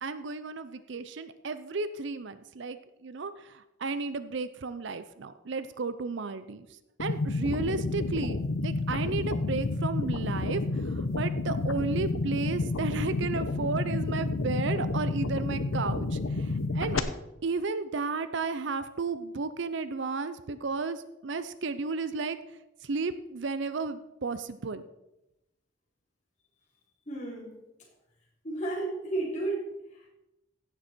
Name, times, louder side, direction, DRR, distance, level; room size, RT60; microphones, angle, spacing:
voice 1, 0.0-8.4 8.6-17.0 17.4-24.8, right 4 dB, 60° right, 12 dB, 0.5 m, -33 dB
sound 1, 7.0-17.0, left 3 dB, 85° left, 0.9 m, -30 dB
voice 2, 27.1-27.5 28.4-30.1, right 2 dB, 35° left, -4 dB, 3.5 m, -33 dB
16.0 x 6.9 x 4.5 m, 0.92 s
head